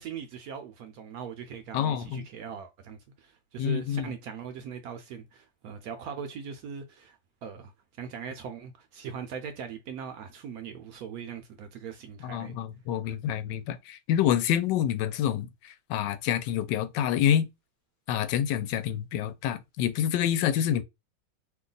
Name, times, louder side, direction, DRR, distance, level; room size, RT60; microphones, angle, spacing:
voice 1, 0.0-7.7 8.0-12.6 13.1-13.2, right 7 dB, 70° right, 0.9 m, -40 dB
voice 2, 1.7-2.3 3.6-4.1 12.2-17.5 18.1-20.8, left 10 dB, 85° left, 1.2 m, -27 dB
3.0 x 2.3 x 3.8 m
omnidirectional pair, 1.9 m